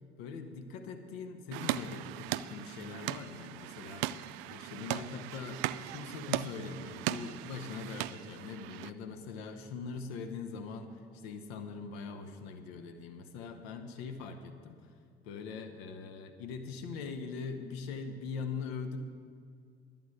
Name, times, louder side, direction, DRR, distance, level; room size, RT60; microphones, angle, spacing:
voice 1, 0.2-14.9 15.2-19.0, left 5 dB, 75° left, 8 dB, 1.0 m, -42 dB
sound 1, 1.5-8.9, right 14 dB, 70° right, 0.4 m, -38 dB
12.0 x 7.2 x 7.8 m, 2.2 s
hypercardioid pair, 55°, 31 cm